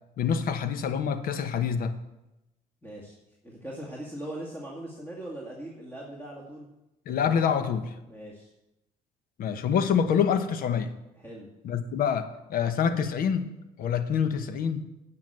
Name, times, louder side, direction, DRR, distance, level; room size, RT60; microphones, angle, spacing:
voice 1, 0.2-2.0 7.1-7.9 9.4-10.9 11.6-14.9, left 7 dB, 65° left, 10 dB, 1.0 m, -26 dB
voice 2, 2.8-3.1 3.4-6.7 8.1-8.5 11.2-11.5, right 1 dB, 15° left, -4 dB, 2.2 m, -40 dB
9.3 x 5.9 x 7.8 m, 0.93 s
supercardioid pair, 75°, 16 cm